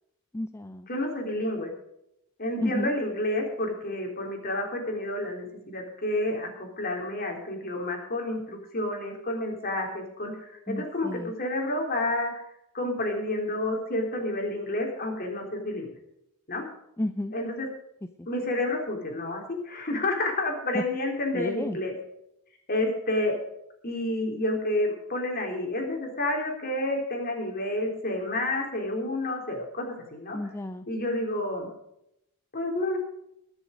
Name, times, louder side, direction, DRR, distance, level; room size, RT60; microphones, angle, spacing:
voice 1, 0.3-0.9 2.6-2.9 10.7-11.3 17.0-17.3 20.7-20.8 21.3-21.8 30.3-30.9, left 1 dB, 10° left, 9 dB, 0.4 m, -31 dB
voice 2, 0.9-1.7 2.4-12.3 12.7-15.9 16.5-16.7 17.3-17.7 18.3-21.9 22.7-23.4 23.8-29.9 30.1-30.4 30.9-31.7 32.5-33.0, left 1 dB, 40° left, 1 dB, 3.6 m, -30 dB
21.5 x 7.2 x 5.1 m, 0.80 s
head